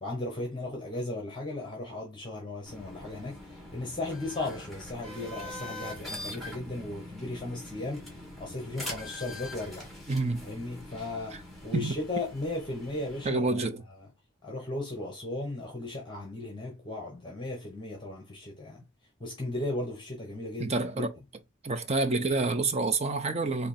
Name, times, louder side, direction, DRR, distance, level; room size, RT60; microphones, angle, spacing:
voice 1, 0.0-9.9 10.4-13.6 14.4-18.9 19.2-21.1 23.6-23.7, left 2 dB, 25° left, 1.2 m, -36 dB
sound 1, 2.7-13.3, left 1 dB, ahead, 1.7 m, -43 dB
voice 2, 10.1-10.5 11.3-11.4 11.7-11.9 13.2-13.8 20.6-21.2 21.6-23.7, right 3 dB, 30° right, 0.7 m, -28 dB
4.2 x 2.8 x 4.3 m
head